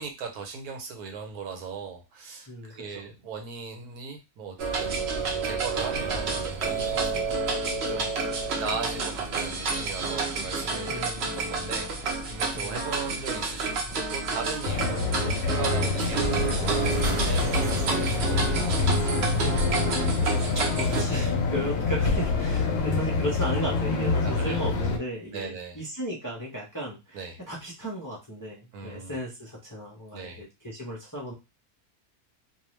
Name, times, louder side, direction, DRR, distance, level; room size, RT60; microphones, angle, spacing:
voice 1, 0.0-5.1 5.4-7.6 7.9-8.1 8.6-16.7 17.2-19.0 24.2-24.6 25.3-25.8 27.1-27.4 28.7-29.2 30.1-30.4, right 5 dB, 85° right, 4 dB, 1.2 m, -38 dB
voice 2, 2.5-3.1 10.9-11.3 12.5-12.8 19.4-20.2 20.7-31.3, equal, 20° left, -4 dB, 0.5 m, -35 dB
sound 1, 4.6-21.0, right 4 dB, 60° right, 0.8 m, -29 dB
sound 2, 14.6-25.0, left 4 dB, 70° left, 0.8 m, -26 dB
2.6 x 2.3 x 3.1 m, 0.25 s
omnidirectional pair, 1.6 m